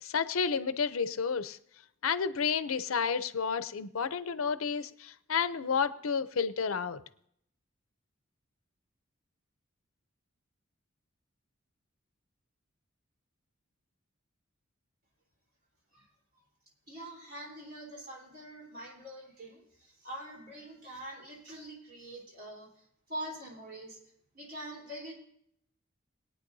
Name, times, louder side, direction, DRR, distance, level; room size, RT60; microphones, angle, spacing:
voice 1, 0.0-1.6 2.0-7.0, left 6 dB, 85° left, 13 dB, 0.6 m, -31 dB
voice 2, 16.9-22.7 23.1-24.0 24.3-25.1, right 1 dB, 50° right, -2 dB, 3.7 m, -44 dB
21.5 x 9.1 x 2.7 m, 0.72 s
head